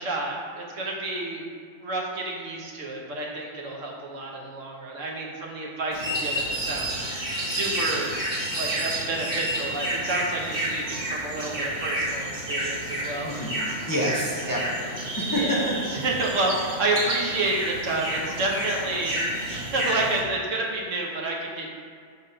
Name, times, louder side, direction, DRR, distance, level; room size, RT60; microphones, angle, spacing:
voice 1, 0.0-1.5 1.8-7.1 7.5-8.2 8.5-13.3 15.3-19.2 19.5-21.7, right 2 dB, 85° right, -1 dB, 1.4 m, -29 dB
sound 1, 5.9-20.2, right 1 dB, 35° right, 1.5 m, -30 dB
voice 2, 13.2-13.6 13.9-15.7, equal, 20° left, -4 dB, 0.6 m, -28 dB
5.8 x 3.6 x 5.2 m, 2.1 s
omnidirectional pair, 1.3 m